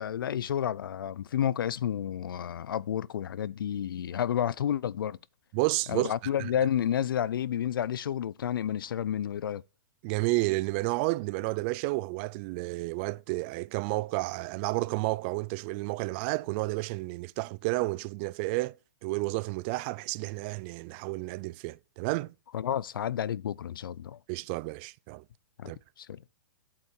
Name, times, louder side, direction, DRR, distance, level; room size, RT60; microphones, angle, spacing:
voice 1, 0.0-5.2 5.9-9.6 22.5-24.2 25.6-25.7 26.0-26.2, left 10 dB, 80° left, 0.6 m, -30 dB
voice 2, 5.5-6.1 6.4-6.5 10.0-18.7 19.0-22.3 24.3-25.2 25.7-25.8, right 23 dB, 30° right, 0.4 m, -31 dB
8.6 x 7.4 x 4.4 m
hypercardioid pair, 155°, 11 cm